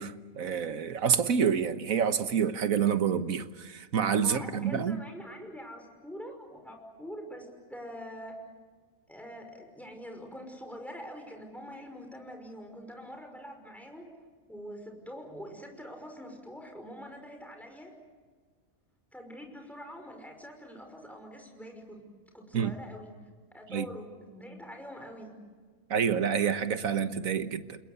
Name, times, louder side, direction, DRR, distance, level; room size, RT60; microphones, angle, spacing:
voice 1, 0.0-5.0 22.5-22.7 23.7-23.9 25.9-27.8, right 7 dB, 75° right, 1.6 m, -28 dB
voice 2, 4.2-8.4 9.1-14.1 14.5-17.9 19.1-22.1 22.3-23.1 23.5-25.4, equal, ahead, 5.6 m, -44 dB
29.5 x 21.5 x 8.2 m
omnidirectional pair, 1.5 m